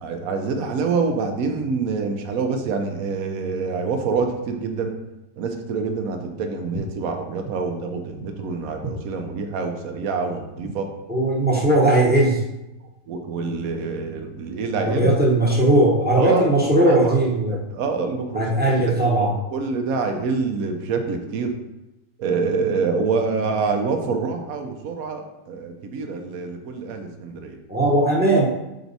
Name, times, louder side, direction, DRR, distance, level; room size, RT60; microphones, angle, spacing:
voice 1, 0.0-4.9 5.4-10.9 13.1-15.1 16.1-16.5 16.9-17.1 17.7-18.5 19.2-21.5 22.2-27.6, right 4 dB, 75° right, 5 dB, 1.2 m, -26 dB
voice 2, 11.1-12.4 14.7-17.6 18.3-19.4 27.7-28.4, right 1 dB, 10° right, -3 dB, 0.8 m, -18 dB
5.1 x 4.6 x 4.0 m, 0.94 s
omnidirectional pair, 1.5 m